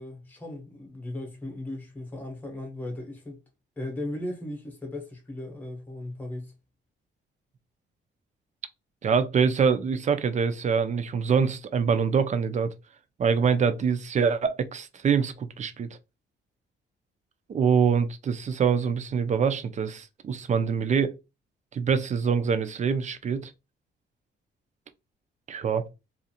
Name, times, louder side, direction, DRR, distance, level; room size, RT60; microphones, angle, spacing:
voice 1, 0.0-3.4 3.8-6.5, left 1 dB, 10° left, 0.9 m, -37 dB
voice 2, 9.0-12.7 13.2-15.9 17.5-21.2 21.7-23.5 25.5-25.8, right 6 dB, 35° right, 0.4 m, -25 dB
2.5 x 2.4 x 2.7 m
cardioid pair, 90°, 20 cm